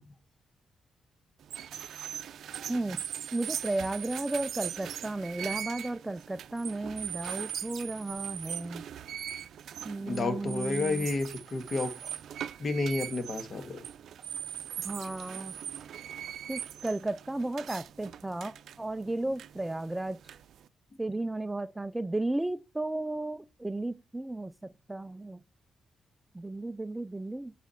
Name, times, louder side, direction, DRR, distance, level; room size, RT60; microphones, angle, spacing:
sound 1, 1.4-20.7, right 9 dB, 75° right, 0.5 m, -40 dB
voice 1, 2.7-3.0 3.3-8.9 9.8-11.1 14.8-15.5 16.5-20.2 21.0-25.4 26.3-27.5, right 2 dB, 10° right, 0.3 m, -34 dB
voice 2, 10.1-12.0 12.6-13.8, left 3 dB, 40° left, 1.6 m, -31 dB
8.2 x 4.9 x 4.4 m
cardioid pair, 120°, 0 cm